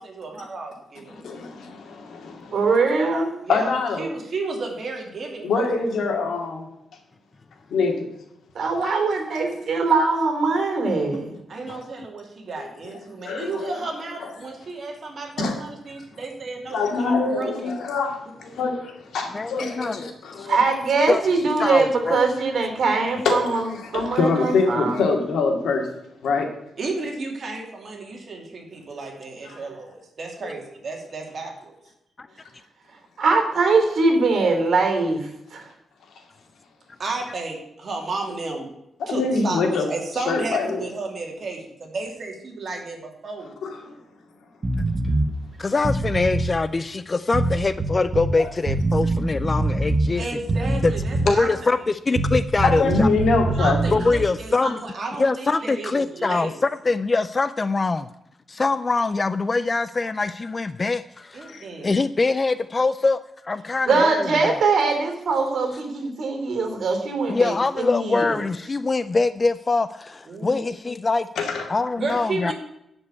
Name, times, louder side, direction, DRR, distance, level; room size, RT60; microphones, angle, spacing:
voice 1, 0.0-1.2 3.4-3.7 4.0-5.7 11.5-17.5 26.8-31.8 37.0-38.7 39.1-41.6 41.9-43.5 50.2-51.5 53.6-56.5 61.3-61.9 70.3-70.7 72.0-72.5, right 3 dB, 45° right, 1 dB, 2.7 m, -32 dB
voice 2, 1.1-2.7 3.5-4.1 5.4-6.7 7.7-8.1 11.7-11.8 12.6-12.7 13.2-13.8 14.2-14.3 15.4-15.6 16.7-20.6 23.2-25.9 26.2-26.5 29.5-29.7 39.0-39.9 40.3-40.8 43.6-44.0 48.4-48.5 52.6-54.0 61.5-61.7 71.4-71.7, left 4 dB, 85° left, 3 dB, 2.3 m, -24 dB
voice 3, 2.5-3.4 8.5-11.4 20.5-23.6 23.9-25.0 33.2-35.7 63.9-68.3, right 3 dB, 60° right, 4 dB, 3.0 m, -22 dB
voice 4, 19.3-20.0 20.4-20.5 21.1-21.2 21.6-22.2 32.2-32.3 45.6-50.2 50.8-50.9 51.3-53.1 53.9-54.8 55.2-56.5 56.8-58.1 58.5-61.6 61.8-64.6 67.3-71.3 71.7-72.5, left 3 dB, 25° left, 14 dB, 0.3 m, -23 dB
sound 1, 44.6-45.3 45.8-46.5 47.3-48.3 48.7-50.1 50.5-51.4 52.2-54.2, right 2 dB, 25° right, 0.9 m, -24 dB
11.5 x 5.4 x 8.2 m, 0.82 s
wide cardioid pair, 155°, 0 cm